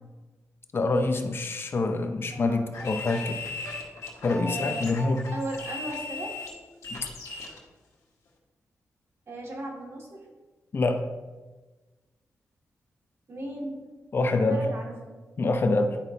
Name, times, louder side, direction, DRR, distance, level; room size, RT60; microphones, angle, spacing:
voice 1, 0.7-3.4 4.2-5.2 6.9-7.1 10.7-11.0 14.1-14.7 15.4-16.0, left 2 dB, 45° left, 6 dB, 0.6 m, -26 dB
voice 2, 2.3-2.7 4.4-4.9 5.3-6.4 9.3-10.3 13.3-13.8 14.3-15.2, right 1 dB, 55° right, -2 dB, 2.0 m, -37 dB
sound 1, 2.7-7.6, left 3 dB, 80° left, 1.5 m, -37 dB
10.0 x 5.1 x 2.8 m, 1.2 s
cardioid pair, 100°, 6 cm